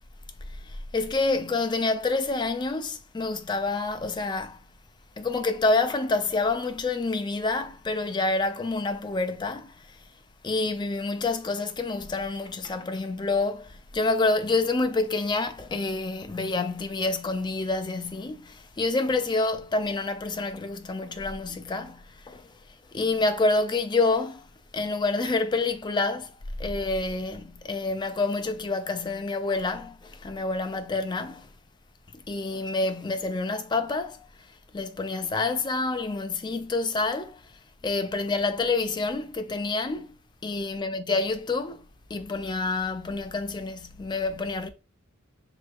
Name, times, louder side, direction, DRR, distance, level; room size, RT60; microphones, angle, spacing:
voice 1, 0.5-4.6 5.2-10.0 10.4-22.5 22.9-24.5 24.7-26.3 26.6-31.5 32.1-34.2 34.7-37.4 37.8-40.1 40.4-41.8 42.1-44.7, left 3 dB, 20° left, 0.4 m, -28 dB
4.9 x 3.4 x 2.4 m
head